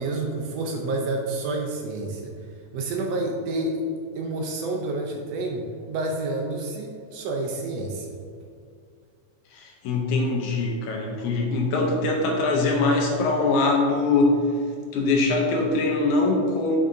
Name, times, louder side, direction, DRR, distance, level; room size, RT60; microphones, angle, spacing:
voice 1, 0.0-2.3 2.7-3.8 4.1-8.1, right 2 dB, 75° right, 1 dB, 1.5 m, -29 dB
voice 2, 9.5-14.4 14.9-16.8, left 3 dB, 80° left, 0 dB, 2.2 m, -22 dB
7.4 x 6.8 x 2.6 m, 2.3 s
omnidirectional pair, 3.5 m